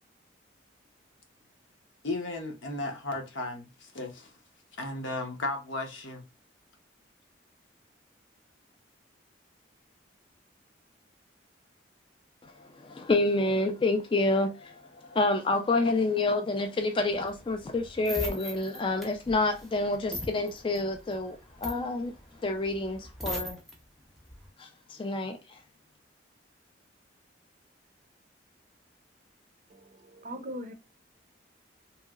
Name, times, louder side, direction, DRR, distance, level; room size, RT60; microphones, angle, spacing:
voice 1, 2.0-4.3 4.8-6.3, left 2 dB, 80° left, 0.8 m, -35 dB
voice 2, 12.8-14.7 15.0-22.1 22.4-23.6 24.6-25.4, left 2 dB, 25° left, 0.3 m, -28 dB
sound 1, 17.1-23.7 24.2-24.5, equal, ahead, 0.7 m, -40 dB
voice 3, 29.7-30.7, equal, 40° right, 0.5 m, -40 dB
3.0 x 2.7 x 2.3 m
head